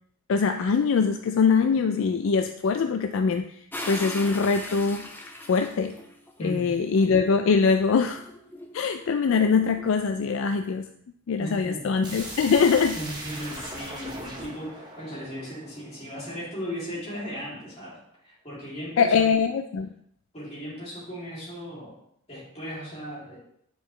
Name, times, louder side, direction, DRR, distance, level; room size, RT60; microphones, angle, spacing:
voice 1, 0.3-3.5 3.9-5.0 5.5-6.0 6.4-8.2 8.7-10.9 11.3-13.0 19.0-19.9, left 5 dB, 60° left, 7 dB, 0.3 m, -23 dB
sound 1, 3.7-6.3 7.0-9.8, left 1 dB, 10° left, 0.5 m, -40 dB
voice 2, 6.4-6.8 11.3-11.9 12.9-19.3 20.3-22.0 22.3-23.4, equal, 30° left, -7 dB, 2.7 m, -37 dB
sound 2, 12.0-16.8, right 1 dB, 20° right, 1.0 m, -40 dB
8.8 x 4.7 x 3.2 m, 0.71 s
head